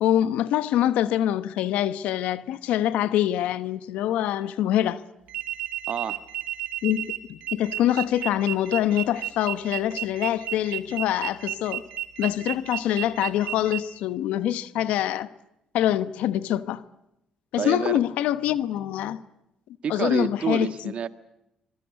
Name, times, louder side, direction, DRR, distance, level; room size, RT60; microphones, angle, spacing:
voice 1, 0.0-5.0 6.8-11.8 12.2-15.3 15.7-16.8 17.5-19.2 19.9-20.7, left 12 dB, 85° left, 1.1 m, -25 dB
sound 1, 5.3-13.8, right 14 dB, 85° right, 2.9 m, -32 dB
voice 2, 5.9-6.3 17.6-17.9 19.8-21.1, right 7 dB, 60° right, 1.6 m, -28 dB
25.5 x 21.5 x 8.2 m
cardioid pair, 80°, 2 cm